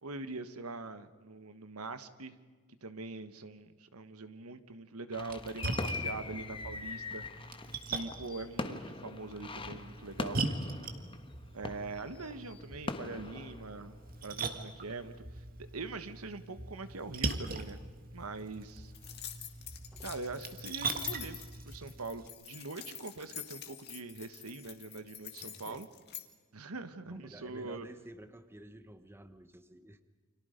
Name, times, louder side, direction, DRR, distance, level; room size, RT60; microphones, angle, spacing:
voice 1, 0.0-2.4 2.8-7.5 7.8-10.4 11.5-17.8 18.1-18.9 20.0-21.4 21.7-25.9 26.5-27.9, right 3 dB, 75° right, 11 dB, 1.3 m, -43 dB
sound 1, 5.1-14.5 14.9-15.1, left 3 dB, 25° left, 1.2 m, -42 dB
Splash splatter, 5.2-22.3, right 3 dB, 40° right, 1.9 m, -41 dB
sound 2, 18.9-26.3, left 12 dB, 50° left, 1.8 m, -46 dB
voice 2, 25.4-25.8 27.0-30.0, right 1 dB, 10° right, 10 dB, 1.1 m, -52 dB
29.5 x 26.0 x 5.2 m, 1.4 s
head